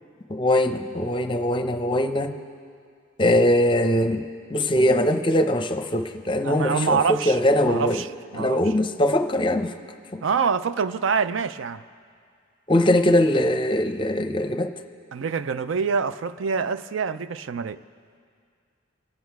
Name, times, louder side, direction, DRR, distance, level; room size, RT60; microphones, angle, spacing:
voice 1, 0.3-2.4 3.2-4.2 4.5-7.0 7.3-8.0 8.4-9.7 10.1-10.2 12.7-14.7, left 1 dB, 25° left, 8 dB, 0.6 m, -21 dB
voice 2, 6.4-8.6 10.2-11.8 15.1-17.8, right 5 dB, 75° right, 13 dB, 0.4 m, -26 dB
24.5 x 8.5 x 4.6 m, 2.2 s
head